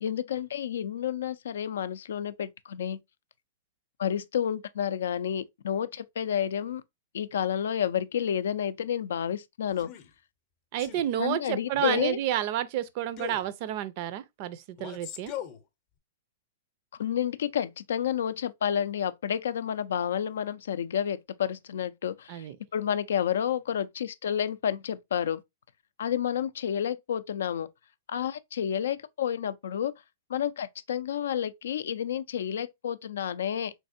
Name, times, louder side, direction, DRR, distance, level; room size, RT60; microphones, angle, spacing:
voice 1, 0.0-3.0 4.0-6.8 7.1-9.9 11.2-12.2 17.0-22.5 22.7-25.4 26.0-27.7 28.1-29.9 30.3-33.7, left 9 dB, 80° left, 0.4 m, -30 dB
Male speech man speaking, 9.7-10.1 10.8-11.1 11.7-12.1 13.2-13.5 14.8-15.6, left 10 dB, 40° left, 0.6 m, -38 dB
voice 2, 10.7-15.3 22.3-22.6, right 12 dB, 45° right, 0.4 m, -30 dB
3.5 x 3.2 x 2.5 m
hypercardioid pair, 150°, 0 cm